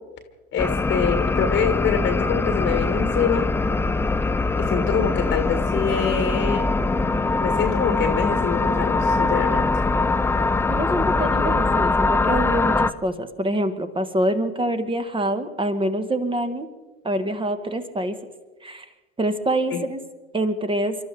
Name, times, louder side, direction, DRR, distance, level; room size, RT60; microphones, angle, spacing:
voice 1, 0.5-3.5 4.7-6.7 7.4-9.6 19.7-19.8, left 7 dB, 30° left, 7 dB, 1.6 m, -25 dB
sound 1, 0.6-12.9, left 3 dB, 5° left, 0.4 m, -22 dB
voice 2, 10.7-16.7 17.0-18.1 18.6-18.8 19.2-20.0 20.3-21.0, right 1 dB, 15° right, 9 dB, 1.6 m, -25 dB
30.0 x 13.0 x 3.6 m, 1.2 s
figure-of-eight pair, 70°, 34 cm